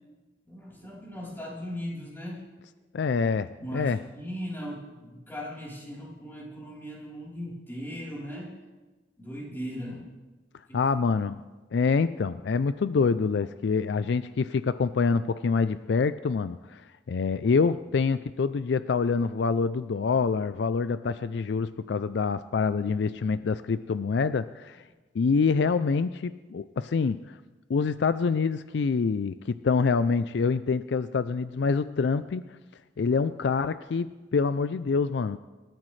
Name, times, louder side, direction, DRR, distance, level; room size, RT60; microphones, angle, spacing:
voice 1, 0.5-2.4 3.2-3.3 3.6-8.5 9.2-10.1 10.7-10.8, equal, 10° left, -5 dB, 3.8 m, -38 dB
voice 2, 2.9-4.0 10.7-11.4 11.7-24.8 25.1-27.4 27.7-32.4 33.0-35.4, left 5 dB, 65° left, 13 dB, 0.4 m, -26 dB
26.5 x 13.5 x 3.2 m, 1.2 s
head